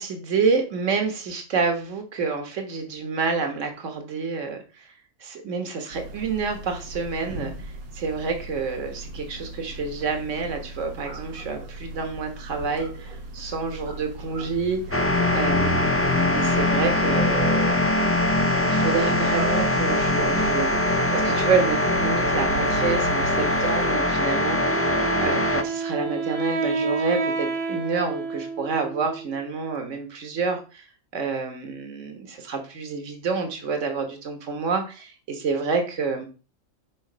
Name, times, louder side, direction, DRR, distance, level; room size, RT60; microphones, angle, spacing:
voice 1, 0.0-4.9 5.2-15.1 15.3-16.1 16.3-17.8 18.4-24.9 25.2-30.9 31.1-36.3, right 4 dB, 60° right, 5 dB, 1.7 m, -28 dB
sound 1, 5.9-23.9, right 3 dB, 90° right, 1.6 m, -36 dB
sound 2, 14.9-25.6, left 1 dB, 15° left, 0.5 m, -22 dB
Wind instrument woodwind instrument, 24.6-29.4, right 4 dB, 45° right, 0.5 m, -29 dB
6.4 x 5.2 x 5.0 m, 0.34 s
omnidirectional pair, 1.4 m